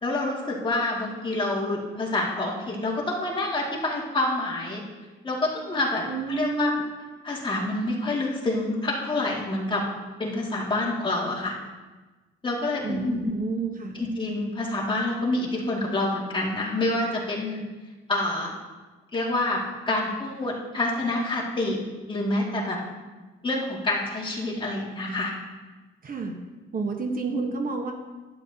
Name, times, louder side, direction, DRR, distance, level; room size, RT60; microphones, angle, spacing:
voice 1, 0.0-4.8 5.2-6.7 7.2-9.8 10.2-11.5 12.4-13.3 13.9-17.6 18.1-18.6 19.1-21.8 22.1-22.8 23.4-25.3, left 2 dB, 25° left, -3 dB, 2.4 m, -27 dB
voice 2, 6.0-6.8 12.8-14.0 26.0-26.3 26.7-27.9, right 3 dB, 45° right, 3 dB, 1.3 m, -29 dB
11.5 x 9.6 x 2.9 m, 1.2 s
cardioid pair, 90°, 20 cm